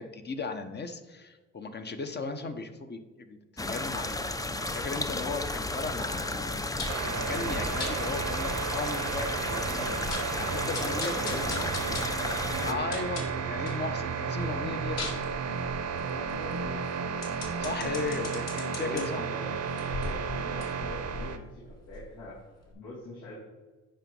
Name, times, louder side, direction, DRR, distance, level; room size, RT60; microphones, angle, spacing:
voice 1, 0.0-3.4 3.7-6.8 7.1-10.0 10.4-11.6 12.6-15.3 17.6-19.2, left 4 dB, 35° left, 7 dB, 0.9 m, -36 dB
sound 1, 3.6-12.7, left 2 dB, 10° left, 0.6 m, -33 dB
sound 2, 6.8-7.1 7.8-8.0 8.5-8.6 8.9-9.0 9.4-9.5 9.9-10.4 10.7-13.8 14.2-19.0 19.6-22.3 22.7-22.8, left 3 dB, 60° left, 2.1 m, -40 dB
sound 3, 6.9-21.4, right 6 dB, 60° right, 0.9 m, -33 dB
voice 2, 10.7-12.0 12.6-13.4 15.9-16.8 18.7-22.4 22.7-23.4, left 2 dB, 80° left, -6 dB, 2.3 m, -43 dB
8.9 x 5.0 x 5.4 m, 1.3 s
cardioid pair, 90°, 30 cm